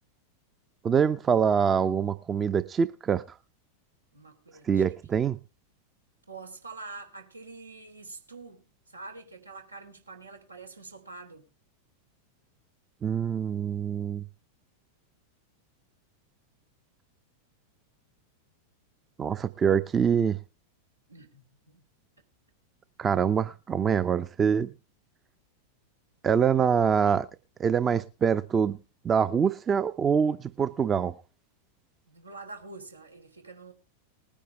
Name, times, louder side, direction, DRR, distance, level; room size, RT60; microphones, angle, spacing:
voice 1, 0.8-3.2 4.7-5.4 13.0-14.2 19.2-20.4 23.0-24.7 26.2-27.3 27.6-28.8 29.0-31.1, right 7 dB, 20° right, 0.7 m, -25 dB
voice 2, 4.1-4.8 6.3-11.4 21.1-21.8 32.1-33.7, right 3 dB, 80° right, 3.5 m, -46 dB
20.0 x 10.0 x 3.3 m
figure-of-eight pair, 90°, 0 cm